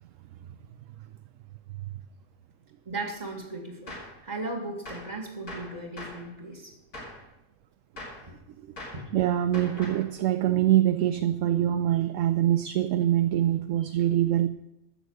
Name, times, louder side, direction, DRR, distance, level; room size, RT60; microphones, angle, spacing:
voice 1, 2.8-6.7 8.3-8.4 8.9-9.0, right 2 dB, 30° right, 3 dB, 2.2 m, -37 dB
Gunshot gunfire, 3.9-4.2 4.9-5.2 5.5-6.3 6.9-7.2 8.0-8.3 8.8-9.1 9.5-10.1, left 1 dB, 90° left, 4.0 m, -41 dB
voice 2, 9.1-14.5, right 12 dB, 70° right, 10 dB, 0.9 m, -24 dB
14.5 x 6.5 x 6.4 m, 0.88 s
omnidirectional pair, 1.5 m